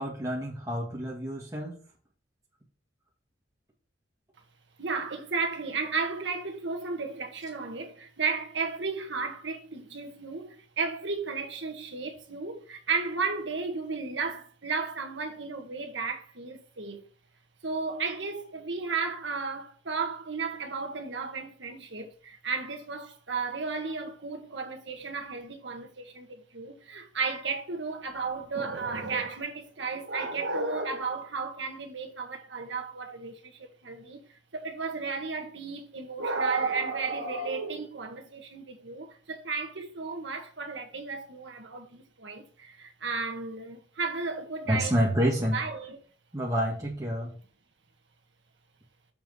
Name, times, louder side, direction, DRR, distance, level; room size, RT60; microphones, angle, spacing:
voice 1, 0.0-1.8 44.7-45.6 46.3-47.3, equal, 20° right, 1.9 m, -28 dB
voice 2, 4.8-17.0 17.6-34.2 34.5-45.0 45.5-46.0, right 4 dB, 75° right, 1.5 m, -33 dB
7.3 x 4.5 x 5.4 m
head